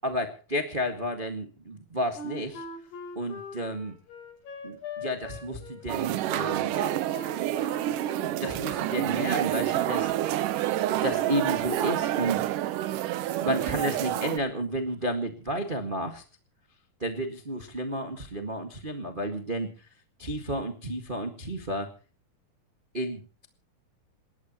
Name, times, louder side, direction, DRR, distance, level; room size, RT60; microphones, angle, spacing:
voice 1, 0.0-2.6 3.1-3.9 4.6-6.7 8.4-10.1 10.9-12.4 13.4-16.2 17.0-19.7 20.2-21.9 22.9-23.5, equal, 45° right, 5 dB, 0.6 m, -31 dB
Wind instrument woodwind instrument, 2.1-8.4, left 1 dB, 80° left, 7.8 m, -40 dB
sound 1, 5.9-14.4, right 13 dB, 70° right, 2.1 m, -28 dB
28.0 x 13.5 x 3.0 m, 0.38 s
omnidirectional pair, 4.6 m